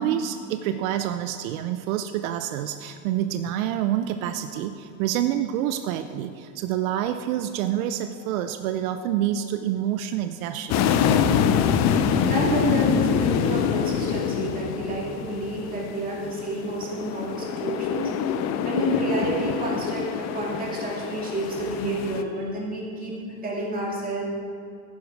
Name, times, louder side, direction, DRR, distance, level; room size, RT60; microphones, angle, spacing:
voice 1, 0.0-10.8, right 11 dB, 80° right, 9 dB, 0.7 m, -27 dB
sound 1, 10.7-22.2, left 7 dB, 40° left, 0.7 m, -25 dB
voice 2, 12.2-18.1 18.6-23.2 23.4-24.3, right 1 dB, 20° right, -3 dB, 2.6 m, -29 dB
11.5 x 9.6 x 4.8 m, 2.6 s
supercardioid pair, 135°, 40 cm